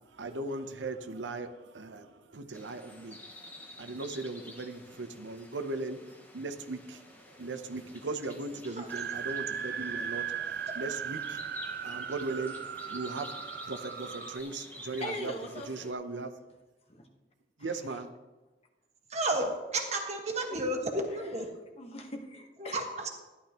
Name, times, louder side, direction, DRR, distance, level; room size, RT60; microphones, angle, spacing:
voice 1, 0.1-3.5 3.8-6.0 6.3-7.0 7.4-11.5 11.8-13.3 13.7-15.3 15.7-16.4 17.6-18.1, right 3 dB, 90° right, 8 dB, 0.7 m, -38 dB
sound 1, 2.5-15.9, left 1 dB, 10° left, 1.0 m, -50 dB
sound 2, 8.9-14.4, right 7 dB, 55° right, 0.4 m, -37 dB
voice 2, 15.0-15.9 16.9-17.1 17.6-18.0 21.8-22.8, left 1 dB, 35° left, 3 dB, 1.2 m, -41 dB
voice 3, 19.1-21.5 22.6-23.1, right 1 dB, 40° right, 2 dB, 1.5 m, -32 dB
13.5 x 11.0 x 3.0 m, 1.1 s
head